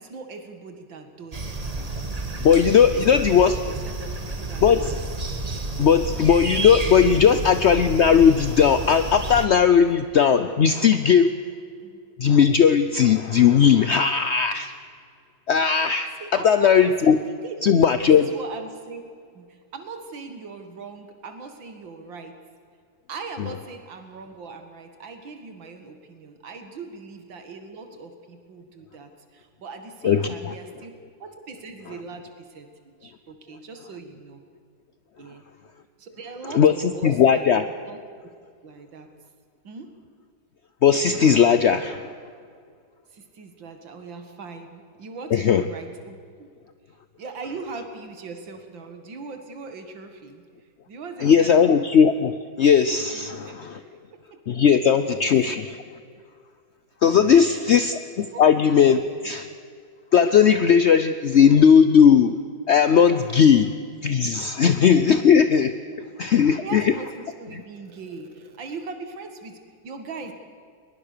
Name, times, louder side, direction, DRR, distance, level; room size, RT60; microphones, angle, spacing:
voice 1, 0.0-2.0 2.9-5.0 5.3-5.7 11.8-12.0 16.2-16.7 17.3-17.6 18.0-19.0 19.3-22.4 23.1-30.9 31.2-34.4 35.2-35.4 36.0-37.4 37.8-38.0 38.6-39.1 39.6-39.9 43.1-46.5 47.2-50.4 50.9-51.8 53.1-54.6 57.3-57.8 58.3-58.6 65.0-65.3 66.6-70.3, right 4 dB, 90° right, 6 dB, 2.5 m, -40 dB
sound 1, 1.3-9.5, right 2 dB, 25° right, 1.1 m, -30 dB
voice 2, 2.4-3.5 4.6-4.9 5.8-11.3 12.2-14.7 15.5-16.1 16.4-17.2 17.6-18.3 30.0-30.5 36.5-37.6 40.8-42.1 45.3-45.6 51.2-53.8 54.5-55.8 57.0-59.5 60.1-62.4 62.7-63.7 64.0-65.7 66.2-66.9, left 7 dB, 65° left, 10 dB, 0.6 m, -17 dB
21.5 x 21.0 x 6.7 m, 2.1 s
omnidirectional pair, 2.0 m